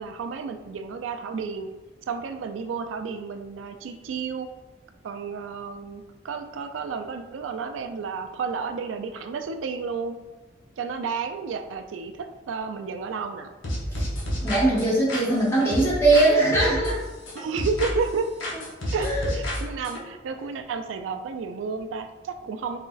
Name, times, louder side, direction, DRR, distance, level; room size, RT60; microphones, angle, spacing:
voice 1, 0.0-1.7 2.1-4.5 5.0-10.2 10.8-13.5 17.3-18.3 18.9-22.8, right 5 dB, 85° right, 7 dB, 0.3 m, -31 dB
sound 1, 13.6-16.3 16.5-18.1 18.4-20.0, equal, 80° left, 1.0 m, -30 dB
voice 2, 14.4-17.0 19.0-19.3, right 2 dB, 15° left, -6 dB, 1.2 m, -21 dB
4.0 x 3.8 x 2.3 m, 1.1 s
head